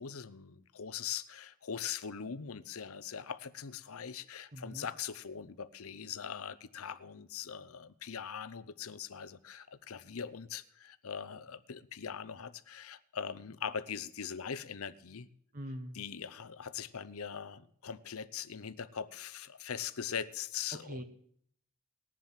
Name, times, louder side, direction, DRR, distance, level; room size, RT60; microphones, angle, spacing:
voice 1, 0.0-15.3 15.9-21.0, left 7 dB, 75° left, 0.7 m, -41 dB
voice 2, 4.5-4.8 15.5-16.0 20.9-21.0, equal, 35° right, 1.0 m, -42 dB
19.5 x 7.5 x 7.4 m
head